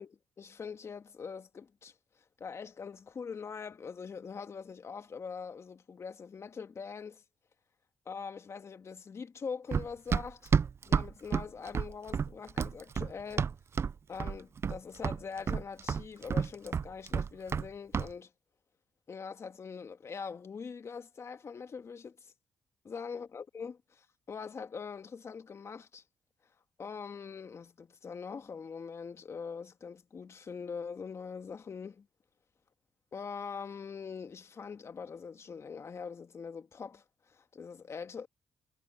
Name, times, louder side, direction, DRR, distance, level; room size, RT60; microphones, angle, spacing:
voice 1, 0.0-7.2 8.1-10.5 10.9-13.5 14.1-18.3 19.1-22.3 22.8-26.0 26.8-32.1 33.1-38.3, left 5 dB, 45° left, 1.9 m, -43 dB
Run, 9.7-13.9 14.2-14.8 15.0-17.7 17.9-18.1, right 6 dB, 40° right, 0.4 m, -30 dB
cardioid pair, 70°, 7 cm